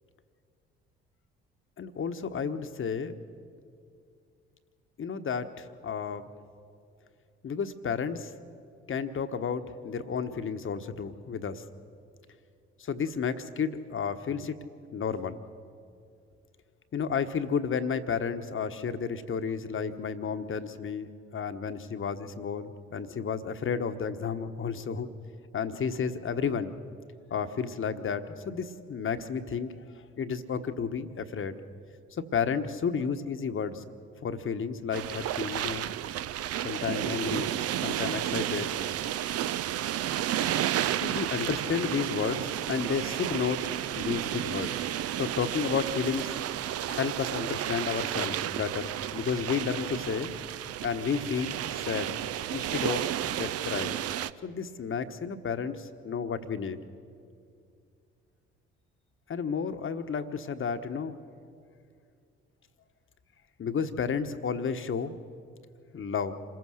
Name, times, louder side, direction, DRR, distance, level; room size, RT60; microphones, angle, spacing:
voice 1, 1.8-3.1 5.0-6.3 7.4-8.3 8.9-11.6 12.8-14.6 14.9-15.4 16.9-25.1 25.5-26.8 27.3-29.8 30.2-31.6 32.1-33.8 34.2-35.9 36.6-37.5 37.8-38.7 40.9-43.6 44.0-44.8 45.1-46.3 46.8-50.3 50.8-52.1 52.5-54.0 54.4-56.8 59.3-61.2 63.6-65.2 65.9-66.3, left 6 dB, 45° left, 9 dB, 1.3 m, -32 dB
sound 1, 34.9-54.3, right 11 dB, 55° right, 0.6 m, -32 dB
26.5 x 15.5 x 6.5 m, 2.4 s
hypercardioid pair, 50°, 30 cm